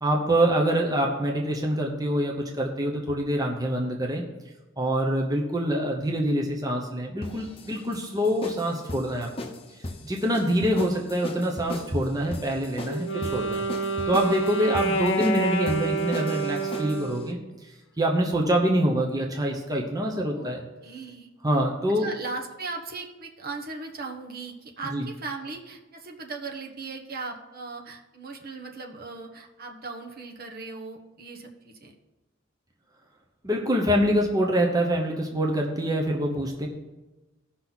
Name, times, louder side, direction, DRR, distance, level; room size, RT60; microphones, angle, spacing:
voice 1, 0.0-4.2 4.8-9.3 10.0-13.6 14.1-20.7 21.4-22.1 24.9-25.1 33.4-36.7, right 1 dB, 20° right, 0 dB, 0.9 m, -25 dB
sound 1, 7.2-17.1, left 1 dB, 30° left, 0.9 m, -38 dB
Wind instrument woodwind instrument, 12.8-17.4, right 2 dB, 65° left, 0.9 m, -28 dB
voice 2, 20.8-21.3 21.9-31.9, right 3 dB, 50° right, 1 dB, 1.2 m, -38 dB
16.5 x 5.9 x 4.1 m, 1.1 s
head